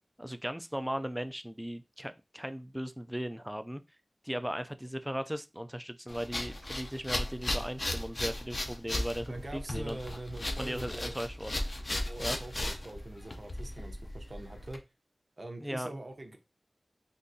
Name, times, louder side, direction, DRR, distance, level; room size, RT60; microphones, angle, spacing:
voice 1, 0.2-3.8 4.2-10.0 10.6-11.6 12.2-12.4 15.6-15.9, equal, 5° right, 0.3 m, -37 dB
sound 1, 6.1-14.8, left 1 dB, 45° left, 0.5 m, -36 dB
voice 2, 9.3-11.2 12.1-14.8 15.4-16.4, right 1 dB, 50° right, 0.7 m, -43 dB
3.7 x 2.5 x 2.6 m
wide cardioid pair, 75°, 0 cm